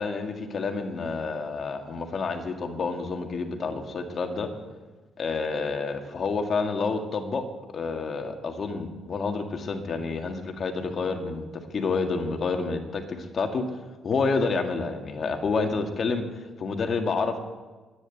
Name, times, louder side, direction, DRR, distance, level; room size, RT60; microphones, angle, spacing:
voice 1, 0.0-4.5 5.2-7.4 7.7-11.4 11.7-13.7 14.0-17.4, left 4 dB, 50° left, 5 dB, 1.8 m, -29 dB
10.5 x 9.7 x 8.1 m, 1.3 s
cardioid pair, 90°, 0 cm